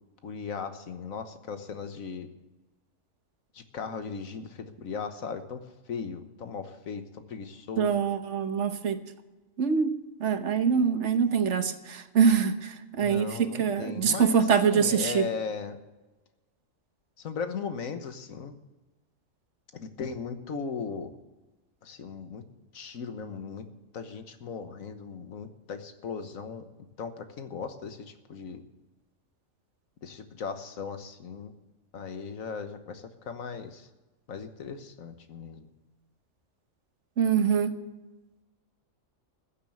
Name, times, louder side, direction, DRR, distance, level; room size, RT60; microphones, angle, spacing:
voice 1, 0.2-2.3 3.5-5.6 5.9-7.0 7.3-8.0 13.0-15.8 17.2-18.5 19.7-21.1 21.8-22.4 22.7-23.6 23.9-26.6 27.0-28.6 30.0-31.5 31.9-33.9 34.3-35.7, left 5 dB, 90° left, 8 dB, 1.6 m, -37 dB
voice 2, 7.8-9.0 9.6-9.9 10.2-15.2 37.2-37.8, right 6 dB, 65° right, 9 dB, 1.3 m, -24 dB
15.5 x 8.4 x 7.7 m, 1.1 s
omnidirectional pair, 1.4 m